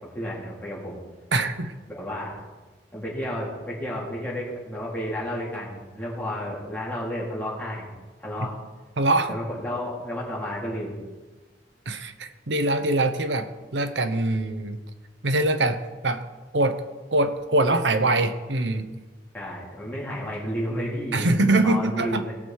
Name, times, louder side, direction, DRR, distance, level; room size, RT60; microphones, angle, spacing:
voice 1, 0.1-1.0 1.9-2.3 2.9-7.9 8.2-8.5 9.3-11.0 19.3-22.3, equal, 10° left, -7 dB, 3.9 m, -32 dB
voice 2, 1.3-1.7 9.0-9.4 11.9-14.8 15.2-16.3 16.5-16.8 17.1-18.9 21.1-22.2, right 2 dB, 75° right, 9 dB, 1.0 m, -23 dB
18.0 x 6.5 x 4.6 m, 1.2 s
head